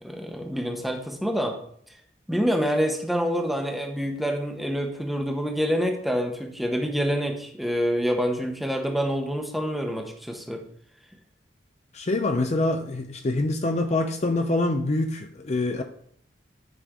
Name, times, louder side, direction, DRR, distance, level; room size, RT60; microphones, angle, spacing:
voice 1, 0.0-1.6 2.3-10.6, equal, ahead, 2 dB, 1.0 m, -27 dB
voice 2, 11.9-15.8, left 2 dB, 40° left, 6 dB, 0.5 m, -25 dB
10.0 x 5.2 x 3.7 m, 0.64 s
head